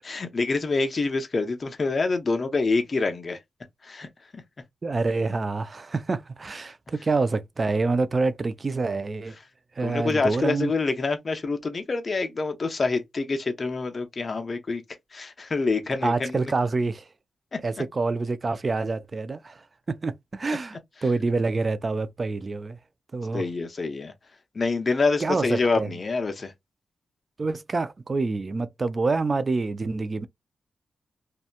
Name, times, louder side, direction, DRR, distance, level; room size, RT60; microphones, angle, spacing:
voice 1, 0.0-3.4 3.8-4.1 4.3-4.4 9.8-14.8 15.1-16.4 17.5-17.6 23.3-24.1 24.5-26.5, left 3 dB, 35° left, 0.6 m, -26 dB
voice 2, 4.8-9.4 9.8-10.7 16.0-17.1 17.6-22.8 23.1-23.4 25.2-25.9 27.4-30.3, right 3 dB, 35° right, 0.3 m, -27 dB
2.8 x 2.2 x 2.4 m
wide cardioid pair, 125°, 0 cm